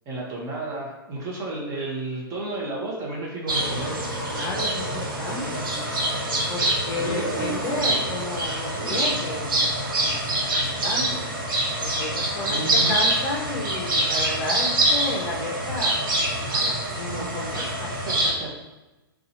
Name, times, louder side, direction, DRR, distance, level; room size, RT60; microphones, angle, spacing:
voice 1, 0.1-4.1 6.9-7.4 12.5-12.9 18.0-18.5, right 2 dB, 25° right, -3 dB, 0.9 m, -32 dB
sound 1, 3.5-18.3, right 1 dB, 65° right, 1.1 m, -25 dB
voice 2, 4.3-5.7 6.5-9.7 10.0-11.2 11.8-17.9, left 2 dB, 30° left, -1 dB, 0.7 m, -32 dB
2.8 x 2.3 x 4.0 m, 1.1 s
hypercardioid pair, 125°, 12 cm